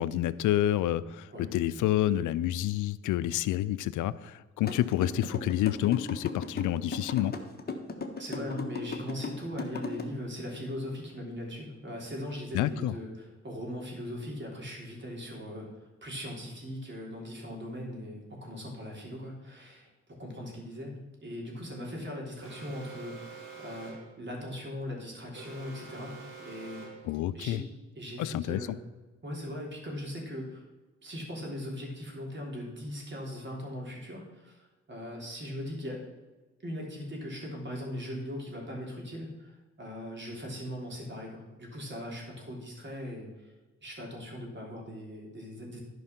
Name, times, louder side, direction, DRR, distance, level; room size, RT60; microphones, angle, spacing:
voice 1, 0.0-7.3 12.5-13.0 27.0-27.6 28.2-28.8, left 13 dB, 90° left, 17 dB, 0.5 m, -28 dB
sound 1, 4.7-10.0, left 5 dB, 30° left, 1.4 m, -35 dB
voice 2, 8.2-19.9 20.2-26.9 27.3-27.6 28.0-28.8 29.2-30.6 31.0-36.0 36.6-43.3 43.8-45.8, equal, 40° right, -1 dB, 3.5 m, -39 dB
Alarm, 22.4-24.2 25.3-27.1, right 5 dB, 80° right, 3.3 m, -46 dB
11.5 x 5.4 x 5.8 m, 1.2 s
cardioid pair, 85°, 30 cm